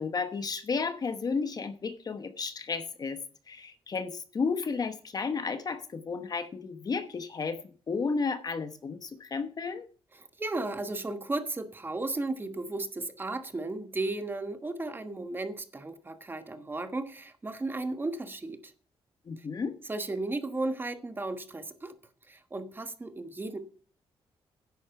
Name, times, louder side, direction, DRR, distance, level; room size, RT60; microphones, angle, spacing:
voice 1, 0.0-3.2 3.5-9.9 19.3-19.7, left 4 dB, 40° left, 1.0 m, -33 dB
voice 2, 10.1-18.7 19.4-19.5 19.9-21.9 22.3-23.6, right 2 dB, 20° right, 1.3 m, -35 dB
10.5 x 8.4 x 5.8 m
cardioid pair, 115°, 10 cm